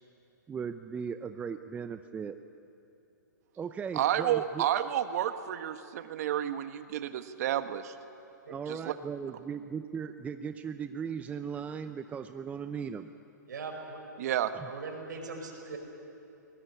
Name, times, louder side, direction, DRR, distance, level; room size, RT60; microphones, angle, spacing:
voice 1, 0.5-2.4 3.6-4.6 8.5-13.1 14.5-14.7, right 6 dB, 15° right, 9 dB, 0.6 m, -37 dB
voice 2, 3.9-8.0 8.7-8.9 14.2-14.5, right 11 dB, 55° right, 10 dB, 1.3 m, -30 dB
voice 3, 13.5-14.1 14.6-15.8, right 4 dB, 70° right, 4 dB, 5.1 m, -40 dB
22.0 x 20.0 x 9.8 m, 2.9 s
hypercardioid pair, 125°, 10 cm